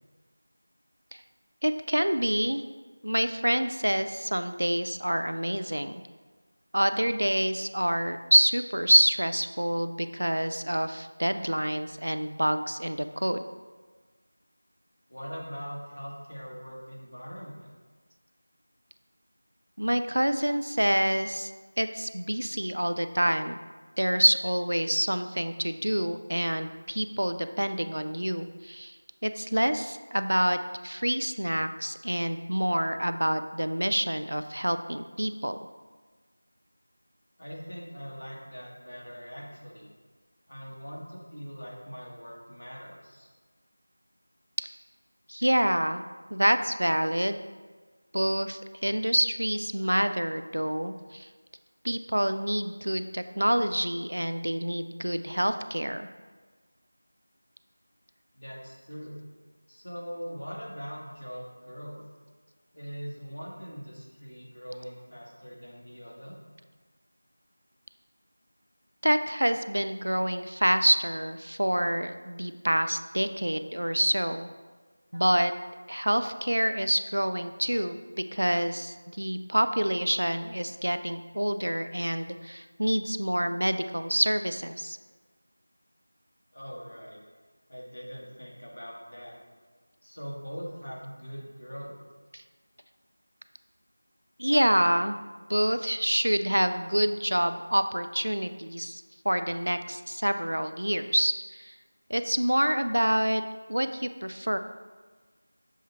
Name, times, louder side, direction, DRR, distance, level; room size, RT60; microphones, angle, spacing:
voice 1, 1.6-2.6 3.0-6.0 6.7-13.4 19.8-21.5 21.8-23.6 24.0-29.0 29.2-30.6 30.8-35.6 45.3-46.0 46.3-47.4 48.1-51.3 51.8-56.1 69.0-74.5 75.1-75.5 75.9-78.0 78.3-85.0 92.3-92.4 94.4-95.2 95.5-101.7 102.1-103.4 103.7-104.6, equal, 75° right, 10 dB, 0.4 m, -27 dB
voice 2, 15.1-17.7 37.4-39.9 40.5-43.3 58.4-59.2 59.7-62.0 62.7-66.4 86.5-87.2 87.7-89.4 90.0-92.0, equal, 60° left, -3 dB, 1.7 m, -41 dB
7.3 x 3.6 x 4.2 m, 1.4 s
figure-of-eight pair, 170°, 0 cm